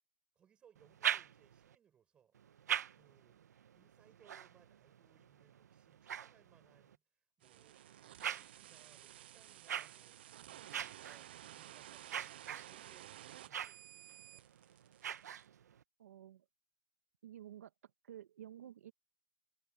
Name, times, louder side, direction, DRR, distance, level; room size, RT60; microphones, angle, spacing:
voice 1, 0.3-2.4 2.9-3.4 3.7-14.5, right 8 dB, 10° right, 6.3 m, -69 dB
sound 1, 0.7-1.7 2.3-7.0 7.5-15.8, right 9 dB, 85° right, 1.0 m, -44 dB
sound 2, 7.4-15.4, right 13 dB, 40° right, 0.3 m, -54 dB
voice 2, 16.0-16.4 17.2-17.7 18.0-18.9, right 11 dB, 60° right, 1.5 m, -52 dB
hypercardioid pair, 180°, 9 cm